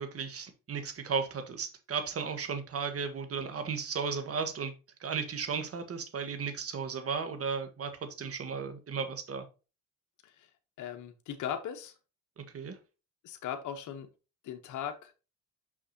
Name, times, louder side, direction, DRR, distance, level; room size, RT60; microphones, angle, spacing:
voice 1, 0.0-4.7 5.0-9.4 12.4-12.8, right 5 dB, 50° right, 1.6 m, -35 dB
voice 2, 10.8-11.9 13.2-14.1 14.4-15.1, left 9 dB, 75° left, 1.1 m, -38 dB
6.2 x 6.0 x 2.8 m
cardioid pair, 90°, 30 cm